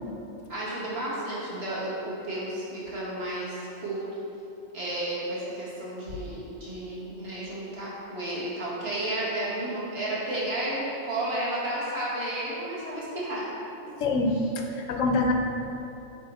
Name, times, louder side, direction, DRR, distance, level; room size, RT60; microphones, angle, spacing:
voice 1, 0.5-4.0 4.7-13.5, right 1 dB, 55° right, -7 dB, 1.5 m, -32 dB
voice 2, 14.0-15.3, left 2 dB, 85° left, 3 dB, 1.0 m, -25 dB
6.7 x 3.5 x 4.1 m, 2.9 s
omnidirectional pair, 1.3 m